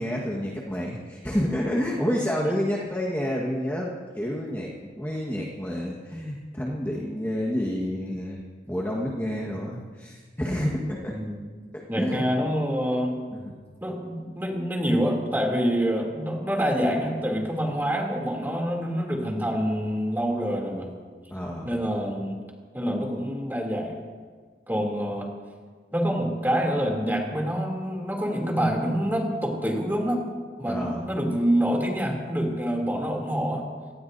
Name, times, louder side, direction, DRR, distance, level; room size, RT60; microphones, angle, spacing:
voice 1, 0.0-8.4 8.7-11.2 11.7-12.2 13.3-13.5 21.3-21.7 30.6-31.0, equal, 10° left, -4 dB, 1.5 m, -29 dB
voice 2, 11.9-13.1 13.8-20.9 21.6-22.4 22.7-24.0 24.7-25.3 25.9-30.3 30.6-33.7, equal, 10° right, -1 dB, 2.9 m, -26 dB
27.0 x 18.5 x 2.7 m, 1.5 s
head